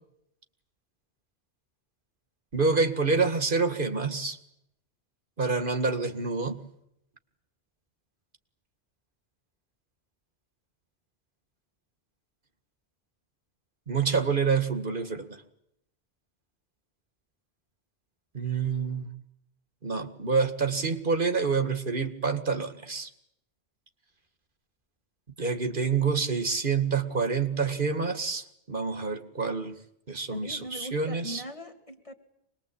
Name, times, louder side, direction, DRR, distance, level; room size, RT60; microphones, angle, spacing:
voice 1, 2.5-4.4 5.4-6.6 13.9-15.3 18.3-19.1 19.8-23.1 25.4-29.8 30.1-31.4, right 4 dB, 55° right, 8 dB, 2.1 m, -27 dB
voice 2, 30.3-32.1, right 1 dB, 30° left, 5 dB, 2.5 m, -41 dB
25.5 x 21.0 x 8.5 m, 0.78 s
omnidirectional pair, 1.1 m